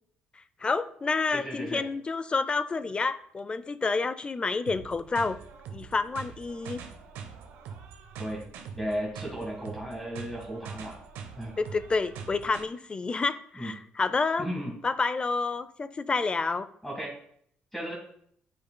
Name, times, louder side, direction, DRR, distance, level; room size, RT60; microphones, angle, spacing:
voice 1, 0.6-5.4 5.7-6.8 11.6-14.5 14.8-16.7, left 4 dB, 30° left, 14 dB, 0.4 m, -29 dB
voice 2, 1.3-1.8 8.2-8.4 8.7-11.0 11.3-11.5 13.6-13.7 14.4-14.7 16.8-17.2 17.7-17.9, equal, 5° left, -2 dB, 1.6 m, -35 dB
sound 1, 4.7-12.7, right 6 dB, 90° right, 0.8 m, -43 dB
9.3 x 5.1 x 2.2 m, 0.67 s
cardioid pair, 85°, 4 cm